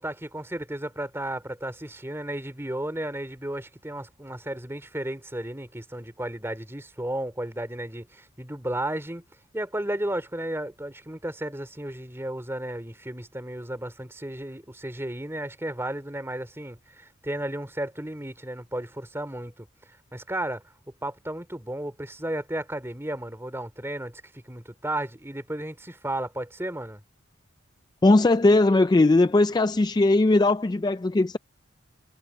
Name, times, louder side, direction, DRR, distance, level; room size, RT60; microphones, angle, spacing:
voice 1, 0.0-9.2 9.5-19.7 20.1-20.6 21.0-27.0, right 1 dB, 10° right, 2.7 m, -33 dB
voice 2, 28.0-31.4, left 2 dB, 20° left, 0.3 m, -19 dB
head